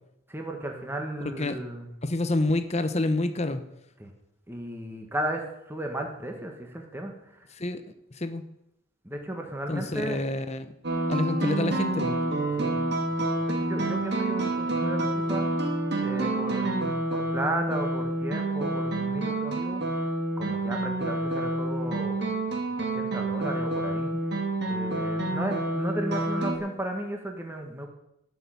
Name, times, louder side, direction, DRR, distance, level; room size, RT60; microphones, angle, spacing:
voice 1, 0.3-1.9 4.0-4.1 4.5-7.4 9.0-10.2 12.5-12.8 13.5-20.1 20.4-22.3 22.8-24.2 24.7-27.9, right 1 dB, 10° right, 2 dB, 1.4 m, -35 dB
voice 2, 2.0-3.6 7.6-7.8 8.2-8.4 9.7-10.7 11.1-12.2, left 2 dB, 35° left, 10 dB, 0.9 m, -28 dB
sound 1, 10.8-26.6, right 2 dB, 55° right, 2.4 m, -28 dB
12.5 x 6.5 x 9.3 m, 0.81 s
head